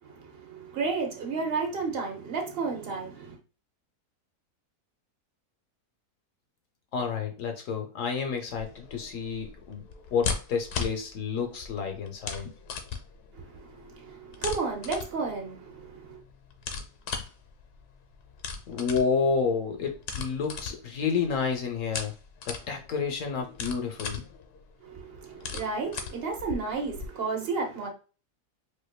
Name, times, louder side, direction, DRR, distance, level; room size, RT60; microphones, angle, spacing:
voice 1, 0.0-3.4 13.3-16.2 24.8-27.9, right 4 dB, 50° right, 0.8 m, -32 dB
voice 2, 6.9-9.8 10.1-12.5 18.7-22.1 22.5-24.2, left 5 dB, 65° left, 0.9 m, -30 dB
sound 1, 8.5-27.1, left 6 dB, 80° left, 1.2 m, -39 dB
4.3 x 2.6 x 2.3 m
omnidirectional pair, 1.7 m